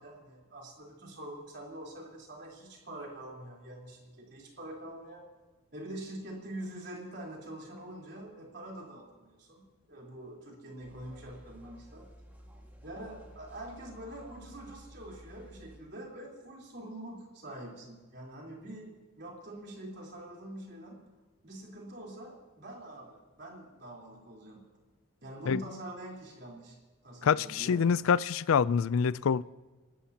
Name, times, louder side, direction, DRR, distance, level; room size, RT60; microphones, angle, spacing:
voice 1, 0.0-5.3 5.7-12.1 12.8-21.0 21.4-24.6 25.2-26.8 27.0-27.9, right 1 dB, 50° right, 3.9 m, -45 dB
sound 1, 10.8-15.8, equal, 10° right, 1.8 m, -53 dB
voice 2, 27.2-29.4, left 6 dB, 75° left, 0.4 m, -26 dB
30.0 x 13.0 x 2.9 m
head